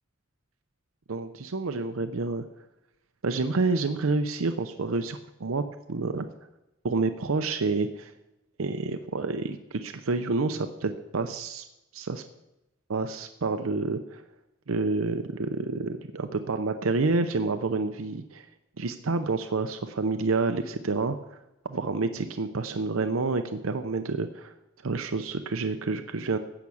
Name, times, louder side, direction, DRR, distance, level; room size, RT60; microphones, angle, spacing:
voice 1, 1.1-2.4 3.2-5.6 5.9-6.3 6.8-8.1 8.6-11.7 11.9-12.2 12.9-14.2 14.7-18.5 18.8-21.2 21.7-24.5 24.8-26.4, right 3 dB, 85° right, 8 dB, 0.7 m, -28 dB
14.5 x 6.0 x 8.5 m, 0.94 s
head